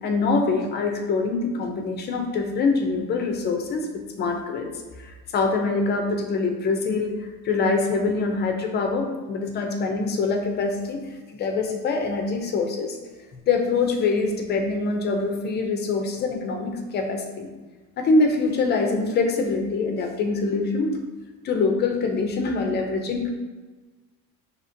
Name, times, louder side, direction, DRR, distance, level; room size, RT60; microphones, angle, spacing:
voice 1, 0.0-3.9 4.2-4.7 5.0-7.1 7.4-11.0 11.3-13.0 13.5-17.5 18.0-20.9 21.4-23.3, left 3 dB, 30° left, 3 dB, 0.3 m, -24 dB
5.6 x 2.8 x 2.6 m, 1.3 s
cardioid pair, 175°, 35 cm